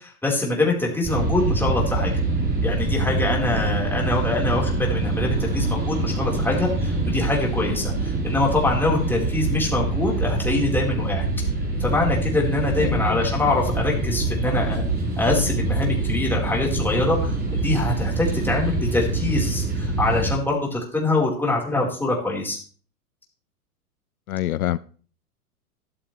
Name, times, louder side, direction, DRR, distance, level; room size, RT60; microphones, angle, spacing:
voice 1, 0.0-2.1 2.6-11.3 11.8-14.8 15.2-17.3 17.6-22.6, left 2 dB, 5° left, 4.5 m, -24 dB
sound 1, 1.0-20.3, right 2 dB, 20° right, 4.4 m, -25 dB
voice 2, 24.3-24.8, left 13 dB, 70° left, 0.6 m, -25 dB
13.5 x 13.0 x 3.4 m
hypercardioid pair, 105°, 46 cm